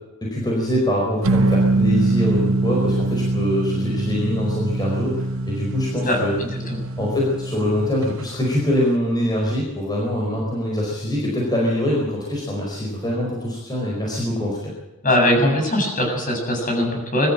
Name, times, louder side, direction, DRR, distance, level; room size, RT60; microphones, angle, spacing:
voice 1, 0.3-6.3 7.0-14.7, left 1 dB, 20° left, -3 dB, 4.8 m, -24 dB
sound 1, 1.2-8.1, right 2 dB, 65° right, 1.1 m, -23 dB
voice 2, 6.1-6.8 15.0-17.3, left 1 dB, 40° left, 2 dB, 7.7 m, -21 dB
22.5 x 13.5 x 8.8 m, 1.1 s
head